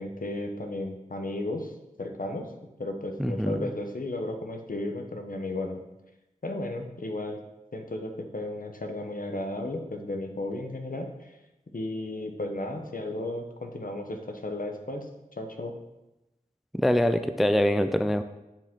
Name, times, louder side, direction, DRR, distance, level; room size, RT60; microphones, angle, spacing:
voice 1, 0.0-1.7 2.0-2.5 2.8-5.8 6.4-7.4 7.7-11.3 11.7-15.1 15.4-15.7, left 1 dB, 65° left, 4 dB, 0.9 m, -34 dB
voice 2, 3.2-3.6 16.7-18.2, equal, ahead, 10 dB, 0.3 m, -24 dB
8.9 x 4.9 x 3.7 m, 0.98 s
wide cardioid pair, 55°, 15 cm